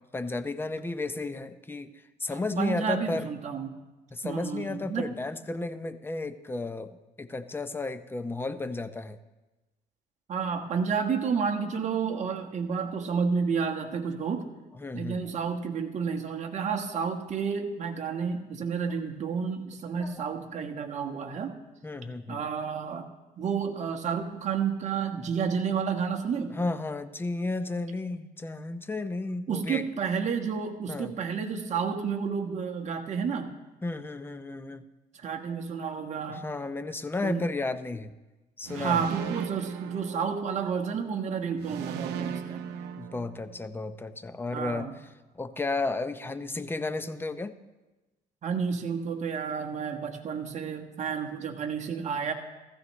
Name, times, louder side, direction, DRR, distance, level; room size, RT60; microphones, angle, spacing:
voice 1, 0.1-1.9 2.2-3.3 4.1-9.2 14.8-15.3 20.0-20.3 21.8-22.4 26.5-29.8 30.9-31.1 33.8-34.8 36.3-38.1 38.6-39.1 43.0-44.9 45.3-47.5, left 3 dB, 15° left, 10 dB, 0.6 m, -33 dB
voice 2, 2.6-3.8 4.2-5.1 10.3-14.5 14.9-21.5 22.3-23.1 23.4-26.6 29.5-33.5 35.1-36.4 37.2-37.4 38.8-42.7 44.5-45.0 48.4-52.3, right 6 dB, 45° right, 3 dB, 1.3 m, -30 dB
sound 1, 38.6-40.8 41.6-43.8, right 7 dB, 80° right, 0.7 m, -37 dB
15.5 x 14.5 x 3.2 m, 1.1 s
cardioid pair, 110°, 17 cm